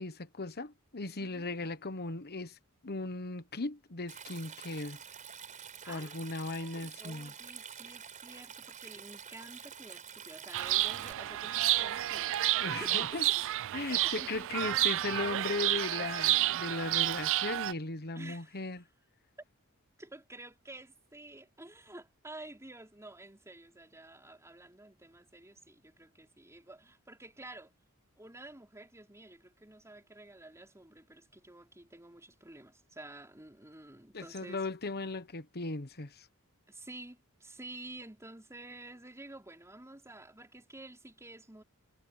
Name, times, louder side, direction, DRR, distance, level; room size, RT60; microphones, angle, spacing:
voice 1, 0.0-2.6 2.8-5.0 5.9-7.3 12.6-13.3 13.7-18.8 34.1-36.3, left 3 dB, 45° left, 1.3 m, -37 dB
voice 2, 1.2-1.7 5.8-12.4 12.8-13.1 13.8-15.2 18.1-18.6 20.0-27.7 28.2-34.6 36.7-41.6, right 2 dB, 15° right, 4.2 m, -50 dB
Stream, 4.1-11.1, right 7 dB, 35° right, 5.0 m, -48 dB
Chirp tweet, 10.5-17.7, right 15 dB, 60° right, 0.4 m, -30 dB
head